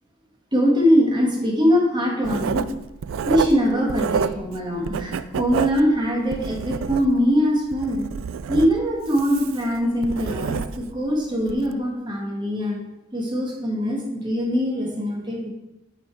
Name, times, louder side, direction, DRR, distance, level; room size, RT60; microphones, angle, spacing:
voice 1, 0.5-2.7 3.3-8.0 8.5-12.8 13.1-15.5, equal, 20° right, -1 dB, 1.3 m, -22 dB
Writing, 2.2-4.6 4.8-7.3 7.7-11.0 11.4-11.6, right 7 dB, 80° right, 0.3 m, -28 dB
9.0 x 4.0 x 4.5 m, 0.96 s
head